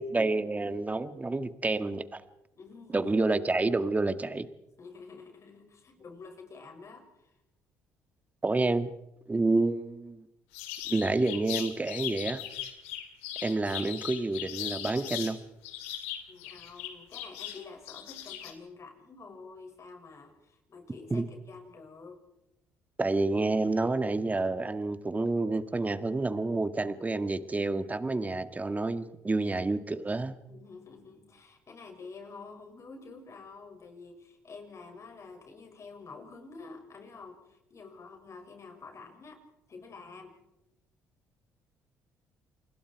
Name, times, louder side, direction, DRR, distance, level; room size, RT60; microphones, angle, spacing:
voice 1, 0.0-2.2 2.9-4.5 8.4-8.9 9.3-10.3 10.9-12.4 13.4-15.4 21.1-21.3 23.0-30.4, right 2 dB, 20° right, 11 dB, 1.8 m, -29 dB
voice 2, 2.5-3.1 4.8-7.4 16.3-22.2 30.5-39.4 39.7-40.4, left 4 dB, 45° left, 3 dB, 6.8 m, -48 dB
sound 1, 10.5-15.3 15.6-18.5, left 11 dB, 90° left, 2.4 m, -38 dB
29.0 x 21.5 x 4.8 m, 0.90 s
hypercardioid pair, 60°, 7 cm